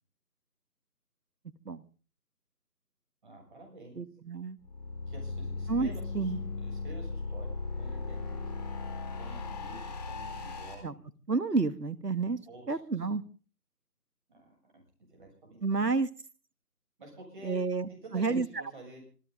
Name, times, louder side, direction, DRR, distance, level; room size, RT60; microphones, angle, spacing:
voice 1, 3.2-4.0 5.1-6.3 6.6-8.4 9.2-11.0 12.5-12.8 14.3-14.8 15.1-15.9 17.0-17.6 17.9-19.0, right 2 dB, 30° right, 1 dB, 7.2 m, -49 dB
voice 2, 4.0-4.6 5.7-5.9 6.2-6.4 10.8-10.9 11.3-12.4 12.7-13.2 15.6-16.1 17.4-18.5, right 4 dB, 80° right, 14 dB, 1.7 m, -30 dB
sound 1, 4.6-10.7, left 3 dB, 25° left, 4.1 m, -37 dB
26.0 x 15.0 x 3.8 m, 0.38 s
figure-of-eight pair, 160°, 48 cm